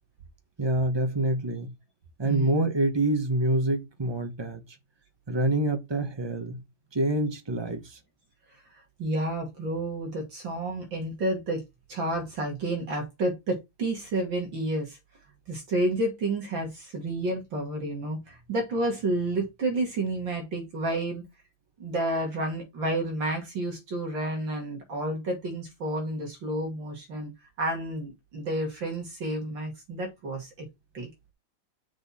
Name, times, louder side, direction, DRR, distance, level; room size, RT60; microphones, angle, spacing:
voice 1, 0.6-1.7 2.2-4.6 5.3-6.6 6.9-8.0, right 2 dB, 15° right, 0.9 m, -26 dB
voice 2, 2.2-2.6 9.0-11.6 11.9-15.0 15.5-21.2 21.8-27.3 27.6-30.5 30.9-31.1, right 1 dB, 65° right, 3.0 m, -30 dB
6.6 x 6.0 x 4.2 m
omnidirectional pair, 2.2 m